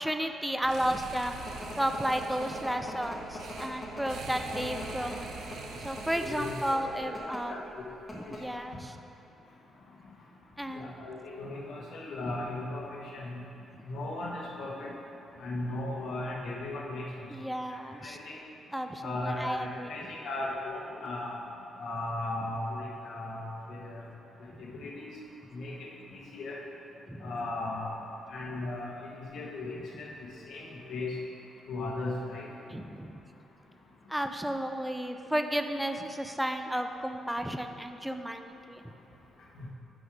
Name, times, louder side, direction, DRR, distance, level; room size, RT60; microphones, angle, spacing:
voice 1, 0.0-1.4 1.8-5.3 5.8-7.6 8.1-8.9 10.6-10.9 12.3-12.4 13.7-13.8 17.3-18.2 18.7-19.9 24.5-24.8 27.1-27.3 32.7-33.2 34.1-38.9, equal, 5° right, 6 dB, 0.4 m, -33 dB
sound 1, 0.6-7.0, right 4 dB, 85° right, 0.6 m, -44 dB
sound 2, 0.9-6.3 7.0-7.4 7.8-7.9 8.1-8.6, left 1 dB, 20° left, 1.1 m, -42 dB
voice 2, 6.1-7.1 7.4-7.9 8.2-8.3 10.7-13.4 13.9-14.9 15.4-17.1 18.0-18.4 19.0-21.4 21.8-23.4 23.7-24.0 24.7-25.1 25.5-25.7 26.1-26.6 27.2-28.0 28.3-30.1 30.5-31.2 31.7-32.5 39.5-39.7, left 2 dB, 70° left, -3 dB, 1.2 m, -37 dB
6.3 x 5.3 x 4.9 m, 2.8 s
cardioid pair, 120°, 0 cm